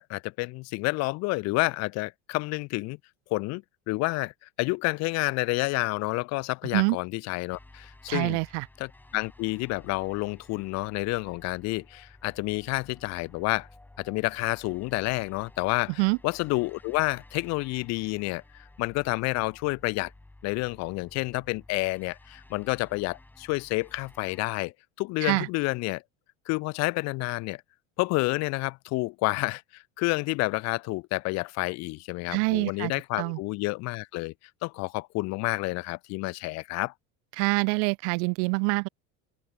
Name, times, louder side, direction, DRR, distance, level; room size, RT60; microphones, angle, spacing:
voice 1, 0.0-3.0 3.3-8.4 8.8-13.7 14.0-20.1 20.4-24.7 25.0-26.0 26.5-27.6 28.0-34.3 34.6-36.9, left 24 dB, 50° left, 1.0 m, -29 dB
sound 1, 7.5-24.5, left 2 dB, 5° left, 6.0 m, -54 dB
voice 2, 8.1-8.6 16.0-16.2 25.2-25.5 32.3-32.9 33.2-33.4 37.4-38.9, right 40 dB or more, 70° right, 0.9 m, -25 dB
open air
cardioid pair, 175°, 35 cm